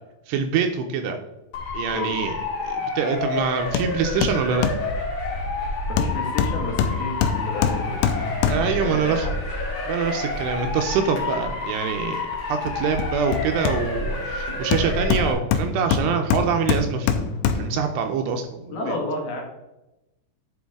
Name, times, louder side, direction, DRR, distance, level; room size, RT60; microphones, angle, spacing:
voice 1, 0.3-1.2 1.7-2.3 2.6-4.7 8.5-9.3 9.9-19.0, right 6 dB, 80° right, 5 dB, 2.6 m, -25 dB
Motor vehicle (road) / Siren, 1.5-15.3, left 3 dB, 50° left, 3.3 m, -29 dB
Hammer, 3.7-3.9 4.2-4.9 6.0-8.9 12.7-14.1 14.7-17.8 18.3-18.4, left 6 dB, 90° left, 3.0 m, -24 dB
voice 2, 5.9-8.0 8.6-9.4 18.7-19.4, left 2 dB, 65° left, 0 dB, 3.1 m, -31 dB
10.0 x 5.2 x 3.5 m, 0.95 s
omnidirectional pair, 5.2 m